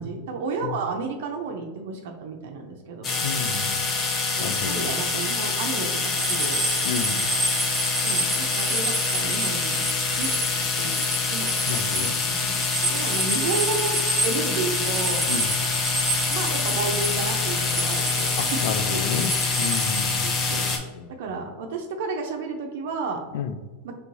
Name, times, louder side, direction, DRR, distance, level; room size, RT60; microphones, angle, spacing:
voice 1, 0.0-3.2 4.3-6.7 8.0-9.9 10.2-11.7 12.0-12.6 12.8-15.5 16.3-19.0 20.2-20.8 21.1-23.2 23.8-24.0, right 4 dB, 75° right, 3 dB, 0.6 m, -32 dB
sound 1, 3.0-20.8, left 4 dB, 25° left, 0.7 m, -26 dB
voice 2, 3.2-3.9 4.4-4.9 6.8-7.2 11.7-12.1 15.3-15.5 18.4-19.3 19.6-21.1 23.3-23.5, left 7 dB, 75° left, 11 dB, 0.4 m, -31 dB
sound 2, 6.1-10.5 10.8-20.0, right 1 dB, 5° right, 1.2 m, -30 dB
4.6 x 3.3 x 2.7 m, 1.4 s
supercardioid pair, 140°, 0 cm